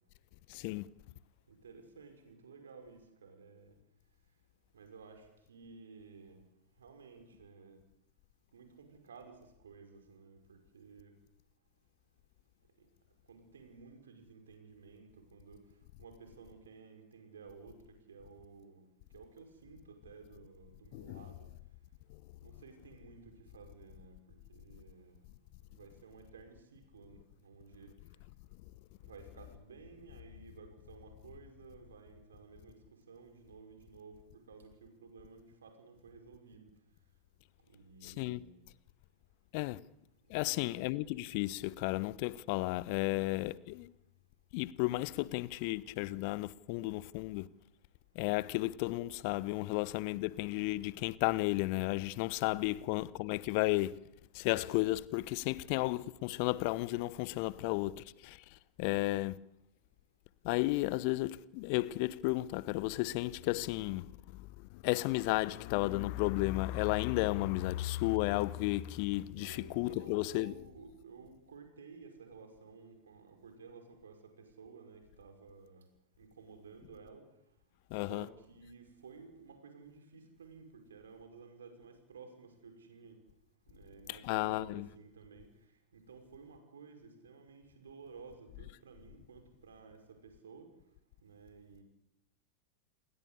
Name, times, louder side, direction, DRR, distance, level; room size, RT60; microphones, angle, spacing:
voice 1, 0.5-0.9 20.9-21.2 38.0-38.4 39.5-39.8 40.3-43.9 44.5-47.5 48.1-54.0 54.3-59.4 60.4-64.5 64.7-70.5 77.9-78.3 84.1-84.8, left 19 dB, 45° left, 0.9 m, -33 dB
voice 2, 1.5-3.7 4.7-6.4 6.8-7.8 8.5-11.1 13.3-15.6 16.0-18.8 19.1-21.5 22.4-25.2 25.7-27.9 29.0-32.8 33.1-36.7 37.7-38.6 40.4-40.7 52.7-52.9 69.3-75.9 76.2-77.2 78.0-83.2 83.7-85.5 85.9-90.7 91.2-91.8, right 5 dB, 65° right, 5.7 m, -54 dB
29.0 x 21.0 x 8.3 m
figure-of-eight pair, 90°, 0 cm